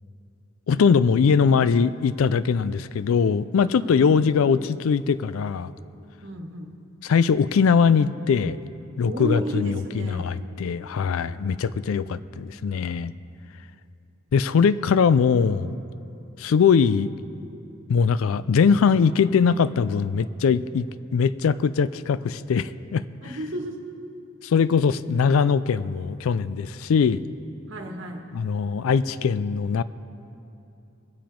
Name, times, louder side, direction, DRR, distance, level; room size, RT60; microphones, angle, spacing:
voice 1, 0.7-5.7 7.0-8.6 9.0-13.1 14.3-15.8 16.4-17.1 17.9-20.9 21.1-23.3 24.4-27.2 28.3-29.8, left 6 dB, 75° left, 16 dB, 0.4 m, -21 dB
voice 2, 3.8-4.4 6.2-6.7 9.0-10.3 23.2-23.8 27.7-28.2, right 1 dB, 60° right, 2 dB, 1.4 m, -33 dB
21.0 x 7.2 x 4.4 m, 2.8 s
head